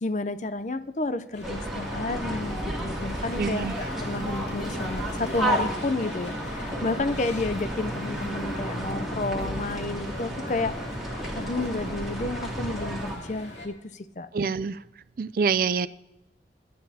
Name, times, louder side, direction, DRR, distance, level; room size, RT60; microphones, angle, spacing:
voice 1, 0.0-10.7 11.0-14.3, left 2 dB, 40° left, 0.5 m, -31 dB
sound 1, 1.3-13.7, left 1 dB, 85° left, 2.3 m, -41 dB
sound 2, 1.4-13.2, right 1 dB, ahead, 2.5 m, -32 dB
voice 2, 3.4-3.7 14.3-14.8 15.2-15.9, right 5 dB, 50° right, 0.4 m, -25 dB
23.0 x 10.0 x 2.8 m
head